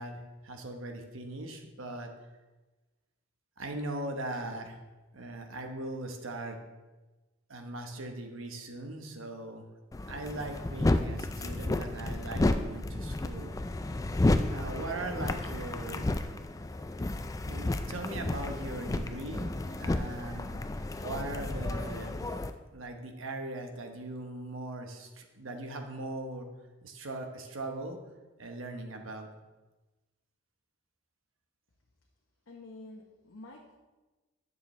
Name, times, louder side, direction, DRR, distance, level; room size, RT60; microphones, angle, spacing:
voice 1, 0.0-2.1 3.6-4.8 5.1-6.6 7.5-9.7 10.1-13.6 14.5-16.1 17.4-20.6 21.0-22.3 22.7-26.5 26.8-28.0 28.4-29.3, right 2 dB, 80° right, 4 dB, 1.1 m, -40 dB
sound 1, 9.9-22.5, left 2 dB, 15° left, 0.3 m, -32 dB
voice 2, 32.5-33.8, left 2 dB, 85° left, -1 dB, 0.9 m, -48 dB
10.0 x 6.8 x 3.2 m, 1.2 s
head